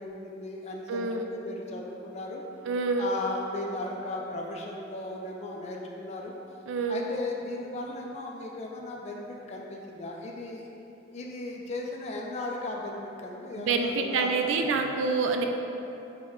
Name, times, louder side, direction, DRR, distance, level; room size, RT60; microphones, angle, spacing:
voice 1, 0.0-2.4 2.9-6.3 6.9-10.7 11.1-14.3 14.6-15.0, left 2 dB, 35° left, 0 dB, 0.3 m, -36 dB
voice 2, 0.9-1.3 2.7-3.1 6.7-7.1 13.6-15.4, right 4 dB, 75° right, 4 dB, 0.4 m, -27 dB
5.3 x 2.1 x 3.6 m, 2.9 s
head